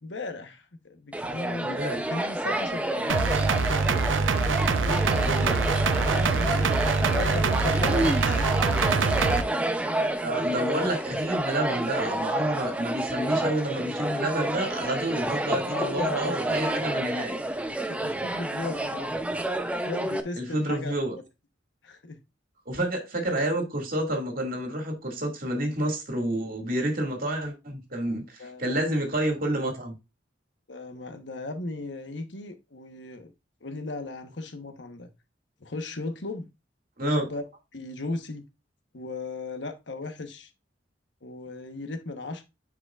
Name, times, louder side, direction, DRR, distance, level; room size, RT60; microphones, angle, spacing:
voice 1, 0.0-3.2 4.8-6.7 7.1-8.8 9.9-10.4 15.6-16.8 17.9-19.1 19.8-20.9 21.8-22.2 28.4-28.8 30.7-33.3 33.6-35.1 35.6-36.5 37.0-37.4 37.7-38.4 38.9-40.5 41.2-42.4, left 2 dB, 65° left, 1.1 m, -36 dB
sound 1, 1.1-20.2, right 1 dB, 5° right, 0.6 m, -29 dB
voice 2, 1.6-2.0 5.2-5.5 10.2-17.4 20.4-21.2 22.7-29.9 37.0-37.2, right 1 dB, 50° right, 2.2 m, -29 dB
sound 2, 3.1-9.4, right 4 dB, 85° right, 0.6 m, -24 dB
9.9 x 5.0 x 2.4 m
head